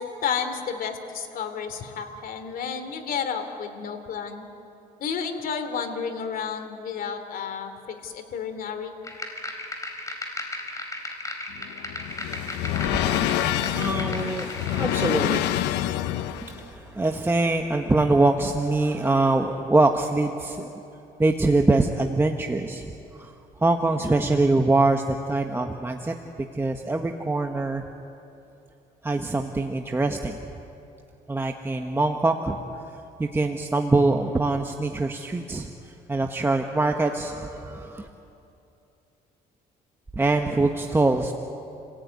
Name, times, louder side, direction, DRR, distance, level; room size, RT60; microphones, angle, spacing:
voice 1, 0.0-4.4 5.0-8.9, left 6 dB, 60° left, 7 dB, 3.0 m, -31 dB
sound 1, 9.0-15.1, left 1 dB, 20° left, 4.3 m, -36 dB
sound 2, 11.5-16.6, left 13 dB, 90° left, 0.8 m, -27 dB
voice 2, 12.9-20.8 21.2-23.3 23.6-27.8 29.0-30.4 31.3-32.6 32.9-38.1 40.1-41.3, right 2 dB, 15° right, 4 dB, 1.2 m, -24 dB
29.0 x 17.5 x 9.5 m, 2.8 s
cardioid pair, 110°, 17 cm